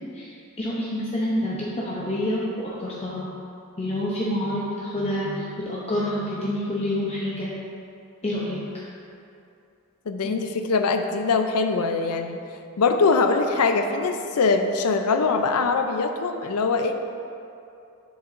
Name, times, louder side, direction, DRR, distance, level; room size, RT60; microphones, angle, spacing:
voice 1, 0.6-2.4 2.8-3.3 3.8-7.5 8.2-8.6 10.2-10.4, left 1 dB, 30° left, -6 dB, 0.7 m, -27 dB
voice 2, 10.1-12.4 12.8-17.0, left 4 dB, 85° left, 6 dB, 0.5 m, -22 dB
7.2 x 7.0 x 2.6 m, 2.6 s
head